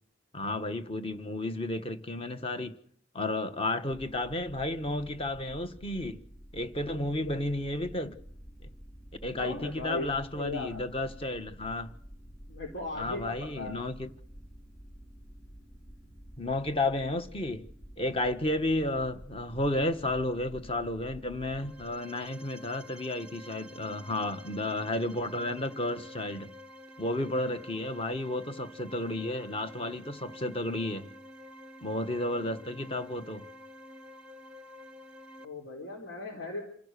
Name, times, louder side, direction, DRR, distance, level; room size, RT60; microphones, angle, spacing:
voice 1, 0.3-2.7 3.1-6.2 6.5-8.2 9.2-11.9 12.9-14.1 16.4-17.7 18.0-26.5 27.0-31.1 31.8-33.5, left 1 dB, 30° left, 1.3 m, -32 dB
sound 1, 3.9-21.9, equal, 55° left, 7.9 m, -50 dB
voice 2, 7.0-7.4 9.3-10.8 12.5-13.8 35.4-36.6, left 2 dB, 80° left, 3.8 m, -38 dB
sound 2, 21.4-35.4, left 1 dB, 5° right, 1.0 m, -49 dB
27.5 x 16.5 x 6.8 m
head